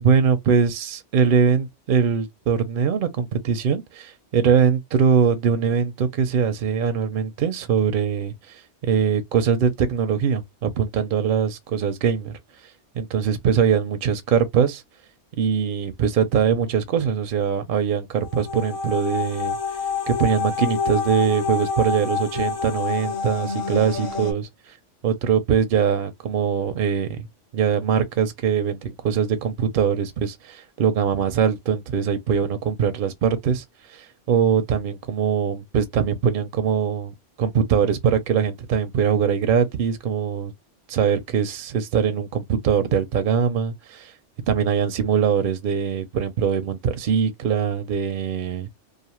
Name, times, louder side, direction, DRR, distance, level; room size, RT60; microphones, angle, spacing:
voice 1, 0.0-12.4 12.9-14.8 15.3-19.6 20.1-24.5 25.0-27.3 27.5-40.5 40.9-44.1 44.5-48.7, right 7 dB, 60° right, 0.6 m, -22 dB
sound 1, 18.2-24.3, left 5 dB, 50° left, 0.8 m, -27 dB
2.5 x 2.4 x 2.9 m
omnidirectional pair, 1.2 m